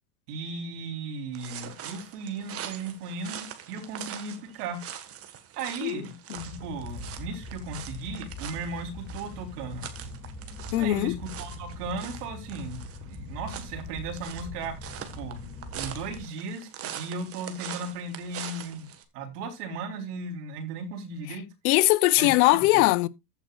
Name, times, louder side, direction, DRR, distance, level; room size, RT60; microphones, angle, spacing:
voice 1, 0.3-4.8 5.5-6.1 6.4-9.9 10.8-15.4 15.7-18.9 19.1-21.5 22.2-22.3 22.7-22.8, right 3 dB, 70° right, 3.8 m, -36 dB
sound 1, 1.3-19.0, right 9 dB, 30° right, 1.5 m, -43 dB
sound 2, 6.4-16.2, left 2 dB, 15° left, 2.0 m, -41 dB
voice 2, 10.7-11.2 21.6-23.1, left 19 dB, 60° left, 0.8 m, -21 dB
14.5 x 8.1 x 2.4 m
supercardioid pair, 135°, 48 cm